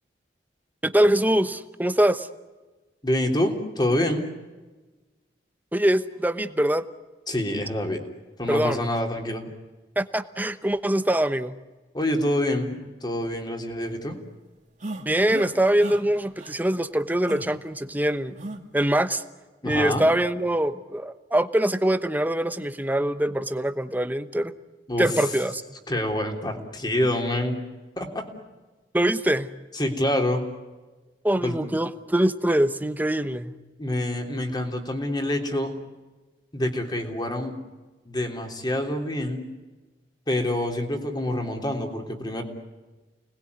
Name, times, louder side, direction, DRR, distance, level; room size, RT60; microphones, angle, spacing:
voice 1, 0.8-2.3 5.7-6.9 8.5-8.9 10.0-11.5 15.1-18.3 18.7-19.2 19.6-24.5 25.0-25.6 28.9-29.5 31.2-33.5, right 1 dB, 10° right, 11 dB, 1.0 m, -23 dB
voice 2, 3.0-4.3 7.3-8.0 8.4-9.5 11.9-12.8 13.0-14.2 19.6-20.0 24.9-25.1 25.9-27.6 28.0-28.2 29.7-30.4 31.4-31.6 33.8-35.7 36.5-37.5 38.0-39.4 40.3-42.4, left 1 dB, 25° left, 3 dB, 3.4 m, -26 dB
sound 1, 14.8-15.5 15.8-16.0 16.4-16.5 17.3-17.5 18.4-18.6, right 2 dB, 45° right, 2.3 m, -34 dB
29.5 x 20.0 x 9.6 m, 1.2 s
head